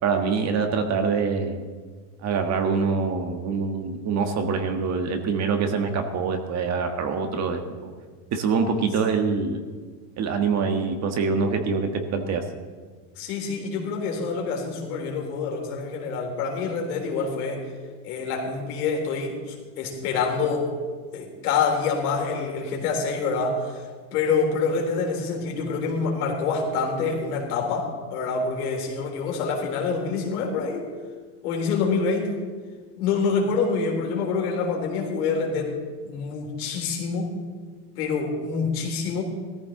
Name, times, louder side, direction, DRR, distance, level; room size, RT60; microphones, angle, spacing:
voice 1, 0.0-1.6 2.2-7.9 8.3-9.6 10.2-12.4, right 5 dB, 35° right, 6 dB, 1.5 m, -25 dB
voice 2, 13.2-17.7 18.0-20.7 21.1-30.9 31.4-32.4 33.0-35.8 36.0-37.4 38.0-39.2, left 4 dB, 75° left, 0 dB, 3.7 m, -26 dB
17.0 x 14.0 x 3.8 m, 1.5 s
supercardioid pair, 130°, 45 cm